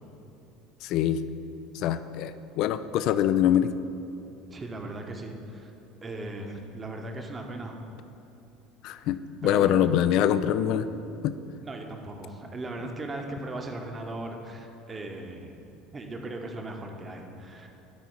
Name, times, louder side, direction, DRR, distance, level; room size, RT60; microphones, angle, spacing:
voice 1, 0.8-1.2 1.7-3.7 8.8-10.9 11.2-11.3, left 10 dB, 55° left, 12 dB, 0.3 m, -24 dB
voice 2, 4.5-5.7 6.0-7.8 9.4-9.8 11.6-15.6 15.9-17.7, right 2 dB, 25° right, 3 dB, 1.0 m, -38 dB
13.0 x 4.6 x 4.4 m, 2.9 s
figure-of-eight pair, 65°, 0 cm